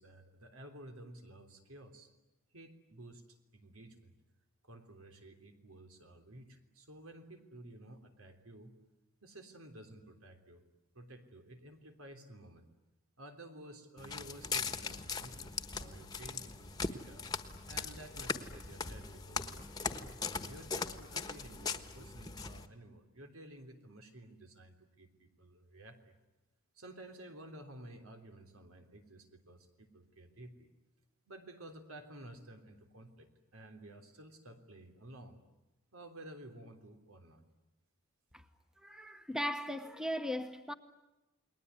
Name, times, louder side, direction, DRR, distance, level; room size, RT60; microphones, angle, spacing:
voice 1, 0.0-2.1 2.5-4.1 4.6-8.7 9.2-10.6 10.9-12.7 13.2-17.3 17.6-26.2 26.7-30.7 31.2-35.4 35.9-37.4, right 1 dB, 90° right, 3.5 m, -53 dB
Walk footsteps, 14.0-22.7, left 4 dB, 20° left, 1.3 m, -40 dB
voice 2, 38.8-40.7, equal, 5° right, 1.1 m, -38 dB
29.5 x 21.0 x 9.6 m
head